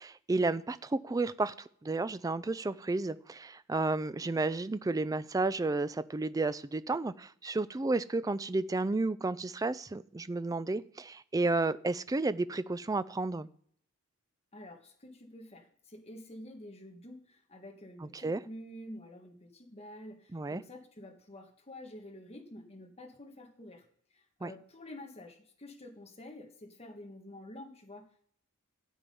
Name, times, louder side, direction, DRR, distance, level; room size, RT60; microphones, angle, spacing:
voice 1, 0.0-1.5 1.8-13.5 18.1-18.4 20.3-20.6 24.4-24.5, right 3 dB, 15° right, 14 dB, 0.4 m, -32 dB
voice 2, 14.5-23.8 24.1-28.2, left 1 dB, 30° left, 1 dB, 1.5 m, -49 dB
13.0 x 7.3 x 5.4 m, 0.63 s
head